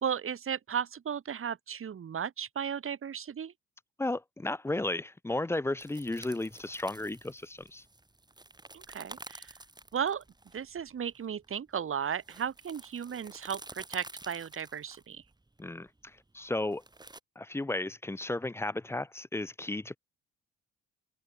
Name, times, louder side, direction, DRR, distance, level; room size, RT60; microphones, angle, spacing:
voice 1, 0.0-3.5 8.7-9.5 9.9-10.2 10.5-15.2, right 8 dB, 45° right, 1.9 m, -35 dB
voice 2, 4.0-7.8 15.6-16.8 17.4-20.0, left 2 dB, 10° left, 0.5 m, -34 dB
sound 1, 5.8-17.2, right 2 dB, 15° right, 4.2 m, -51 dB
open air
cardioid pair, 90°, 30 cm